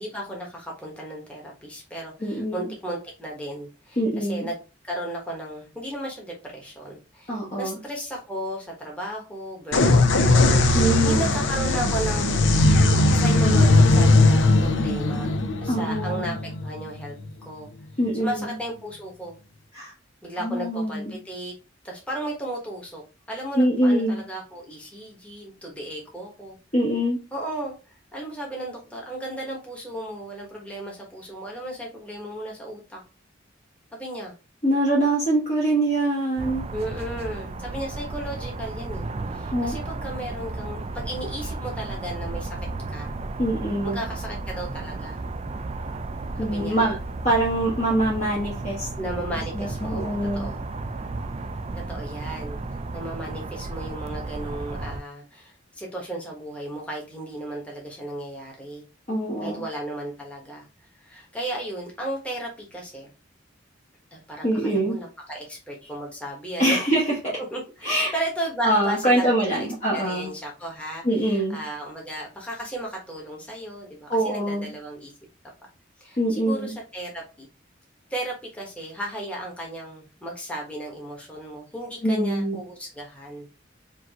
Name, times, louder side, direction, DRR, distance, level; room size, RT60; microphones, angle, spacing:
voice 1, 0.0-4.6 4.8-10.0 10.3-10.8 11.0-12.6 13.1-15.3 15.6-17.2 17.4-17.7 18.2-19.4 20.2-21.5 21.8-23.0 23.3-26.6 27.3-33.0 33.9-34.3 36.7-42.5 42.9-43.1 43.8-45.2 46.3-46.9 49.0-50.7 51.9-58.8 59.4-60.7 61.0-63.1 64.1-66.8 67.5-69.7 69.9-75.1 76.0-77.5 78.1-83.5, right 1 dB, 5° left, -2 dB, 1.1 m, -35 dB
voice 2, 2.2-2.7 4.0-4.5 7.3-7.8 10.7-11.4 15.7-16.3 18.0-18.5 19.7-19.9 20.4-21.1 23.5-24.2 26.7-27.2 34.6-36.7 39.5-39.8 43.4-44.0 46.4-47.0 47.2-48.9 49.5-50.5 59.1-59.6 64.4-65.0 66.6-67.3 67.8-68.1 68.6-70.3 71.0-71.6 74.1-74.7 76.2-76.7 82.0-82.6, right 1 dB, 40° left, -5 dB, 1.1 m, -24 dB
sound 1, 9.7-17.3, left 2 dB, 80° left, 0.5 m, -19 dB
sound 2, 36.4-55.0, right 2 dB, 35° right, 0.3 m, -33 dB
5.1 x 2.6 x 2.8 m, 0.32 s
head